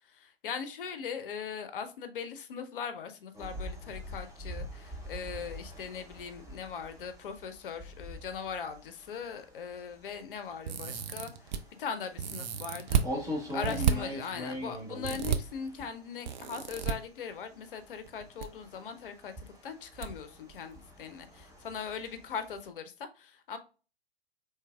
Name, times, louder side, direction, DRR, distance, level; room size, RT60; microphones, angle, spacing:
voice 1, 0.1-11.3 11.8-23.6, left 6 dB, 55° left, 9 dB, 0.7 m, -40 dB
sound 1, 3.3-16.9 17.3-22.7, equal, 10° right, 1.0 m, -43 dB
sound 2, 10.7-11.6 12.2-13.1 13.6-13.9 15.0-15.4 16.3-16.9 18.1-18.5 18.7-18.8 20.0-20.1 20.5-20.6, right 8 dB, 45° right, 0.5 m, -30 dB
4.5 x 3.3 x 2.2 m, 0.35 s
figure-of-eight pair, 105°, 31 cm